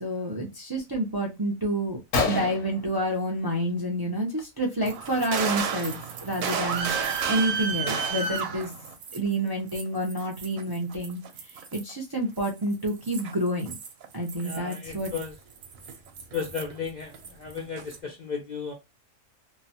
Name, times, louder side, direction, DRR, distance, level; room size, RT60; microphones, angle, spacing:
voice 1, 0.0-6.9 7.3-8.7 9.1-11.2 11.7-13.7 14.1-15.1, right 1 dB, 30° right, 0.4 m, -29 dB
Gunshot gunfire, 1.4-1.5 1.9-2.0 2.1-3.7 4.1-4.4 4.7-4.9 5.7-5.9 6.4-6.5 7.0-8.5, left 4 dB, 80° left, 1.2 m, -32 dB
sound 1, 4.8-9.3 9.7-11.9 12.4-16.9 17.1-18.0, right 6 dB, 90° right, 1.0 m, -32 dB
voice 2, 14.4-15.3 16.3-17.1 17.4-18.7, left 6 dB, 50° left, 0.5 m, -34 dB
2.8 x 2.2 x 2.7 m
omnidirectional pair, 1.4 m